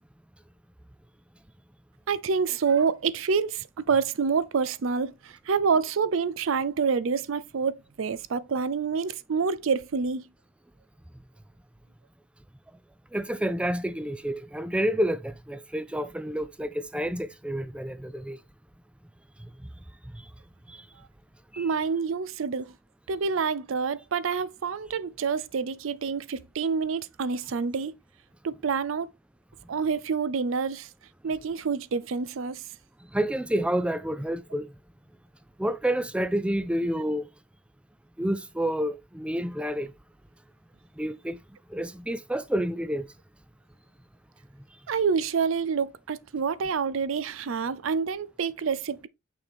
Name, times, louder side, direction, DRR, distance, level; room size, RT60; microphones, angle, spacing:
voice 1, 2.1-10.3 21.6-22.7 23.1-27.9 28.4-29.1 29.7-30.9 31.2-32.6 44.9-49.1, right 5 dB, 75° right, 0.5 m, -27 dB
voice 2, 13.1-18.4 19.6-19.7 20.1-20.3 20.7-20.8 21.5-21.7 33.1-34.7 35.6-37.3 38.2-39.9 41.0-41.4 41.7-43.1, right 1 dB, 5° right, 0.3 m, -29 dB
6.1 x 4.5 x 3.4 m
head